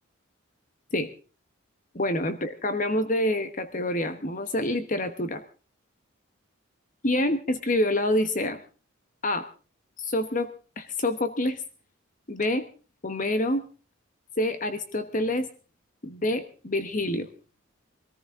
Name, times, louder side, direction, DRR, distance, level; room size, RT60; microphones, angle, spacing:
voice 1, 1.9-5.4 7.0-8.6 9.2-9.4 10.0-10.5 10.8-11.6 12.3-12.6 13.0-13.6 14.4-15.5 16.0-17.3, left 1 dB, 35° left, 10 dB, 1.1 m, -27 dB
23.5 x 14.5 x 3.7 m, 0.36 s
head